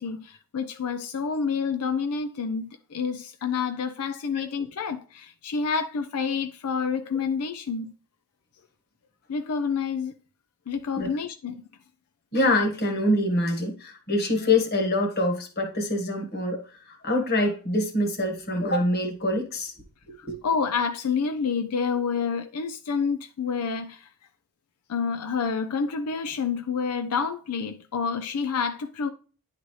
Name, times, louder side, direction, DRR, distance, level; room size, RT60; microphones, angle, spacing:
voice 1, 0.0-7.9 9.3-10.1 10.7-11.6 20.2-24.1 24.9-29.1, left 5 dB, 85° left, 0.5 m, -28 dB
voice 2, 12.3-16.6 16.9-19.7 20.2-20.4, left 1 dB, 45° left, 1.4 m, -25 dB
10.0 x 4.1 x 3.1 m
head